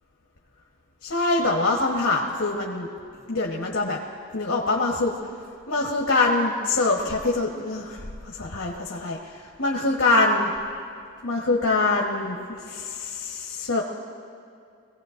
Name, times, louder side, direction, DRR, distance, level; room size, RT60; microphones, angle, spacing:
voice 1, 1.0-2.9 3.3-4.0 4.3-5.2 5.7-10.5 11.2-13.8, left 2 dB, 65° left, -1 dB, 1.2 m, -24 dB
23.0 x 17.5 x 2.6 m, 2.5 s
head